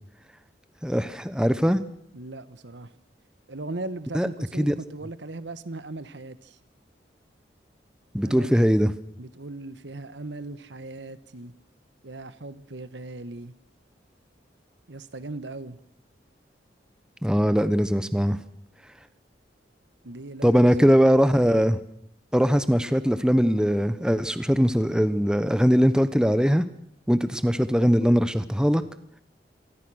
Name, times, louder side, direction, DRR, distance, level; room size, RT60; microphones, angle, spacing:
voice 1, 0.8-1.8 4.1-4.3 4.6-4.7 8.1-8.9 17.2-18.4 20.4-21.8 22.3-26.6 27.1-28.8, equal, 5° right, 0.9 m, -21 dB
voice 2, 2.1-2.9 3.5-6.6 8.2-8.6 9.2-11.5 12.0-13.5 14.9-15.8 20.0-21.0, right 2 dB, 75° right, 1.3 m, -38 dB
26.5 x 20.0 x 6.4 m
head